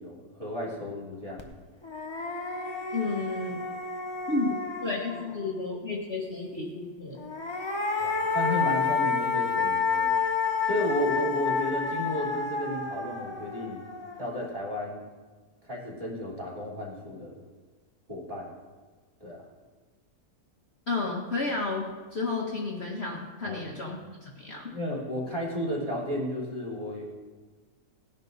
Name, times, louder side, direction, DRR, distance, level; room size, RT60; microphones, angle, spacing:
voice 1, 0.0-1.4 8.0-10.2 10.6-13.8 14.2-15.0 15.6-17.4 18.1-18.5 19.2-19.4 23.4-23.6 24.7-27.0, left 1 dB, 20° right, -5 dB, 3.5 m, -33 dB
sound 1, 1.4-1.5 1.8-5.5 7.1-14.4, left 5 dB, 20° left, 0.9 m, -30 dB
voice 2, 2.9-3.6 4.3-7.3 20.9-24.6, left 3 dB, 40° left, -2 dB, 1.6 m, -32 dB
18.0 x 10.5 x 4.1 m, 1.4 s
omnidirectional pair, 1.7 m